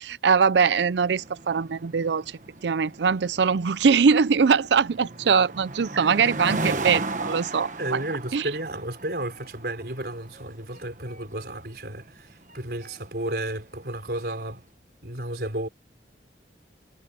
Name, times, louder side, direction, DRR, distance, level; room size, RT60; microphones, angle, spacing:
voice 1, 0.0-2.2 2.6-8.0 8.3-8.4, right 5 dB, 80° right, 0.5 m, -22 dB
sound 1, 0.9-14.4, right 2 dB, 45° right, 1.4 m, -36 dB
voice 2, 7.8-14.6 15.0-15.7, right 1 dB, 65° right, 4.2 m, -32 dB
head